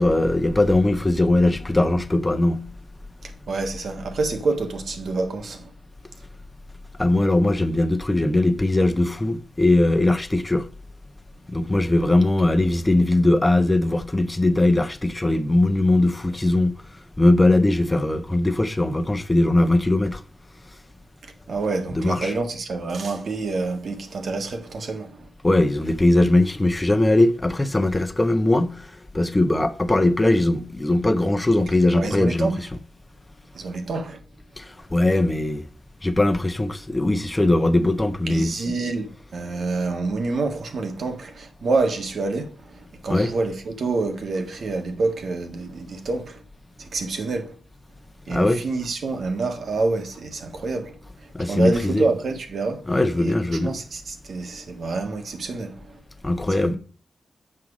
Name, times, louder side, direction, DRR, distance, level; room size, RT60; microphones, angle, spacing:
voice 1, 0.0-2.6 7.0-10.6 11.5-16.8 17.2-20.2 21.9-22.3 25.4-28.9 29.1-32.5 34.6-35.6 36.0-38.5 43.1-43.3 48.3-48.6 51.3-52.0 52.9-53.7 56.2-56.8, left 2 dB, 15° left, 1.0 m, -20 dB
voice 2, 3.2-5.7 21.2-25.3 31.9-32.5 33.5-34.2 38.3-46.4 46.8-47.5 48.3-52.8 53.2-53.3 53.6-56.0 56.5-56.8, right 3 dB, 70° right, 1.6 m, -27 dB
7.7 x 5.7 x 4.9 m
wide cardioid pair, 90°, 0 cm